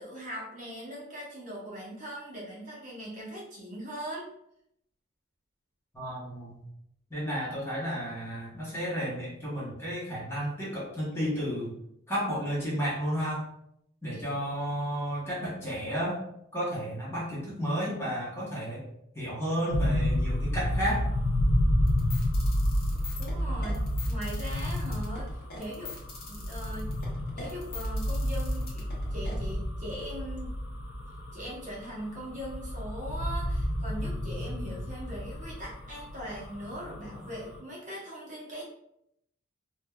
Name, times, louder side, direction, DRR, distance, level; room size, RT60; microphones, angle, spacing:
voice 1, 0.0-4.3 14.1-14.2 23.2-25.9 26.3-26.9 27.3-30.5 31.3-38.6, equal, 35° right, -5 dB, 0.8 m, -40 dB
voice 2, 5.9-6.6 7.1-11.7 12.1-13.4 14.0-16.2 16.5-18.9 19.1-21.1, equal, 10° left, -7 dB, 0.8 m, -32 dB
sound 1, 19.7-37.6, left 1 dB, 85° left, 0.5 m, -30 dB
sound 2, 21.9-29.3, left 5 dB, 45° left, 0.7 m, -43 dB
3.3 x 2.1 x 2.2 m, 0.76 s
head